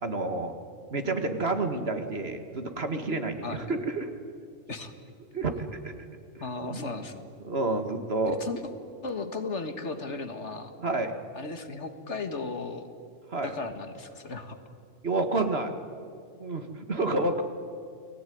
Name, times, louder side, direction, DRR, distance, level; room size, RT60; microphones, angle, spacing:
voice 1, 0.0-0.5 0.9-4.1 5.3-5.9 6.7-6.8 7.4-8.4 10.8-11.1 13.3-13.5 15.0-15.7 16.4-17.4, right 2 dB, 50° right, 7 dB, 2.2 m, -29 dB
voice 2, 6.4-7.2 8.4-8.7 9.0-10.7 11.3-12.9 13.4-14.6, left 3 dB, 60° left, 8 dB, 2.1 m, -35 dB
30.0 x 20.5 x 9.5 m, 2.4 s
omnidirectional pair, 1.4 m